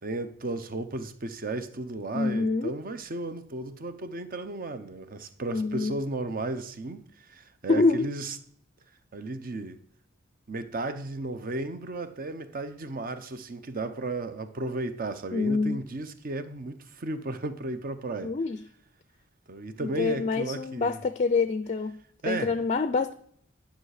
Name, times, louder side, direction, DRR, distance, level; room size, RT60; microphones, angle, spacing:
voice 1, 0.0-8.4 9.1-9.8 10.5-18.3 19.5-21.0 22.2-22.5, right 2 dB, 45° right, 0.7 m, -34 dB
voice 2, 2.1-2.7 5.5-6.0 7.7-8.1 15.3-15.8 18.2-18.6 19.8-22.0 22.2-23.1, left 3 dB, 35° left, 0.4 m, -26 dB
10.5 x 5.7 x 4.9 m
head